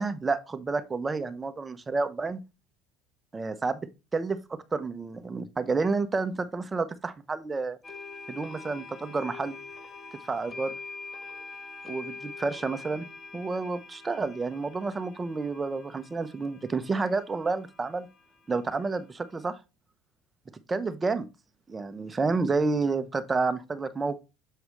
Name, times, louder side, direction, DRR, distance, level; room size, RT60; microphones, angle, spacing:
voice 1, 0.0-2.4 3.3-3.8 4.1-7.8 8.3-9.6 10.3-10.7 11.8-13.0 13.3-18.1 18.5-19.6 20.7-21.3 21.7-24.2, right 4 dB, 25° right, 0.9 m, -30 dB
sound 1, 7.8-19.5, left 4 dB, 30° left, 1.2 m, -45 dB
7.5 x 4.7 x 3.1 m
supercardioid pair, 90°, 0 cm